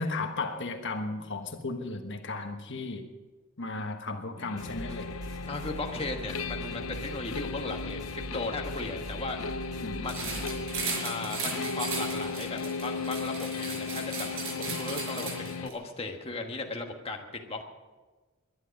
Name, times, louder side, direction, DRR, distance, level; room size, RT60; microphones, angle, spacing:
voice 1, 0.0-3.1 3.6-5.1 9.8-10.0, left 3 dB, 55° left, 5 dB, 1.4 m, -35 dB
sound 1, 4.4-15.7, left 4 dB, 80° left, 0.8 m, -36 dB
sound 2, 4.6-10.8, right 1 dB, 20° right, 2.5 m, -42 dB
voice 2, 5.5-9.4 10.0-10.4 11.0-17.6, left 3 dB, 25° left, 2 dB, 1.4 m, -37 dB
sound 3, 10.1-15.7, right 4 dB, 65° right, 4.9 m, -36 dB
21.5 x 11.0 x 5.3 m, 1.3 s
head